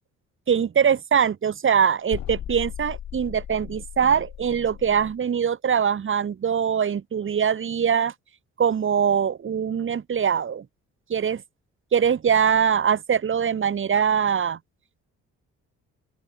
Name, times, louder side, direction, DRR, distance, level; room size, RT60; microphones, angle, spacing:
voice 1, 0.5-8.1 8.6-10.6 11.1-11.4 11.9-14.6, right 7 dB, 40° right, 1.4 m, -22 dB
sound 1, 2.1-5.2, left 11 dB, 70° left, 5.8 m, -37 dB
open air
cardioid pair, 90°, 30 cm